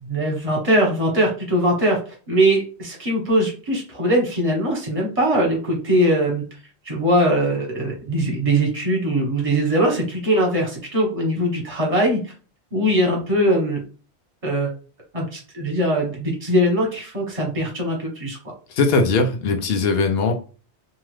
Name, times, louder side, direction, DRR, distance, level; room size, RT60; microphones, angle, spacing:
voice 1, 0.0-6.4 6.8-12.3 12.7-13.8 14.4-14.7 15.1-18.4, right 1 dB, 30° right, -2 dB, 1.2 m, -21 dB
voice 2, 18.7-20.3, left 3 dB, 65° left, 6 dB, 0.8 m, -19 dB
2.8 x 2.3 x 3.1 m, 0.36 s
omnidirectional pair, 1.1 m